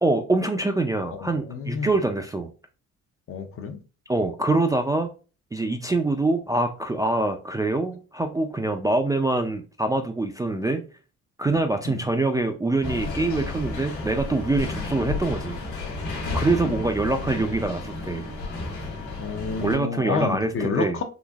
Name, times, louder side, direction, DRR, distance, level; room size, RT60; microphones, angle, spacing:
voice 1, 0.0-2.5 4.1-5.1 5.5-10.8 11.4-15.6 16.3-18.3 19.6-21.0, right 2 dB, 10° right, 0.3 m, -24 dB
voice 2, 1.1-1.9 3.3-3.8 11.9-12.0 16.6-16.8 19.2-21.0, left 5 dB, 45° left, 0.6 m, -30 dB
sound 1, 12.8-19.8, left 3 dB, 80° left, 1.4 m, -32 dB
3.9 x 2.6 x 2.3 m
cardioid pair, 90°, 30 cm